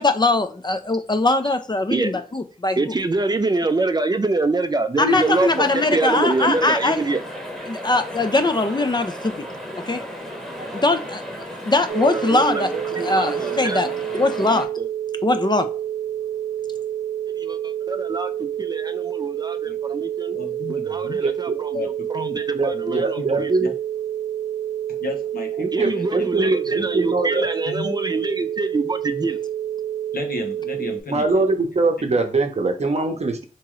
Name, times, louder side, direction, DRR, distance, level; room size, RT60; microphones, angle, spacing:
voice 1, 0.0-2.9 5.0-7.0 7.7-9.3 9.9-10.0 10.7-11.2 11.7-14.7 15.2-15.7, left 2 dB, 30° left, 0.4 m, -21 dB
voice 2, 2.8-7.2 11.9-13.8 14.8-14.9 17.4-20.4 20.7-23.5 25.7-29.4, right 3 dB, 25° right, 0.4 m, -25 dB
sound 1, 5.1-14.7, equal, 5° left, 1.0 m, -34 dB
sound 2, 11.9-31.0, right 11 dB, 80° right, 0.6 m, -28 dB
voice 3, 20.3-21.2 21.7-22.4 22.7-23.7 25.0-26.0 26.3-26.5 27.6-28.0 30.1-31.4 32.1-32.2, left 3 dB, 80° left, 0.9 m, -33 dB
voice 4, 21.2-21.6 22.5-23.7 25.6-27.5 31.1-33.4, right 3 dB, 45° right, 0.8 m, -22 dB
3.5 x 2.9 x 3.0 m
wide cardioid pair, 75°, 15 cm